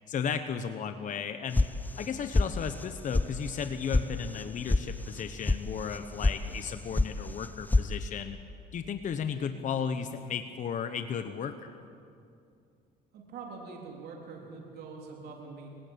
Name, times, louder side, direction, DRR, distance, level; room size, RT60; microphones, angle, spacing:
voice 1, 0.1-1.7 2.0-8.4 8.7-11.8, left 7 dB, 50° left, 8 dB, 1.1 m, -34 dB
sound 1, 1.5-2.1 2.3-2.9 3.1-3.2 3.6-4.0 4.3-4.8 5.1-5.6 5.9-6.4 6.6-7.1 7.4-7.9, left 2 dB, 10° left, 0.7 m, -25 dB
voice 2, 13.1-15.7, right 4 dB, 70° right, 0 dB, 3.5 m, -44 dB
25.5 x 17.0 x 8.9 m, 2.5 s
cardioid pair, 110°, 17 cm